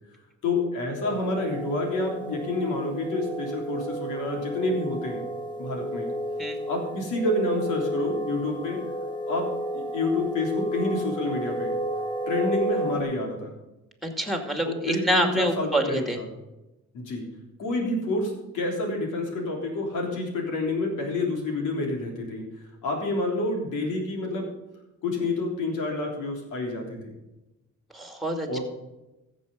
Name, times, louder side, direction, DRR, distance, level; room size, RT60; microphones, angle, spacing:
voice 1, 0.4-5.2 5.6-6.1 6.6-8.8 9.3-11.7 12.3-13.5 14.6-16.3 16.9-17.2 17.6-22.4 22.8-24.5 25.0-27.0 28.5-28.6, left 2 dB, 85° left, 1 dB, 3.5 m, -28 dB
sound 1, 1.0-13.0, right 1 dB, 15° left, 2.1 m, -32 dB
voice 2, 14.0-16.2 27.9-28.6, equal, ahead, 5 dB, 2.3 m, -27 dB
14.5 x 7.4 x 5.4 m, 0.99 s
cardioid pair, 90°, 30 cm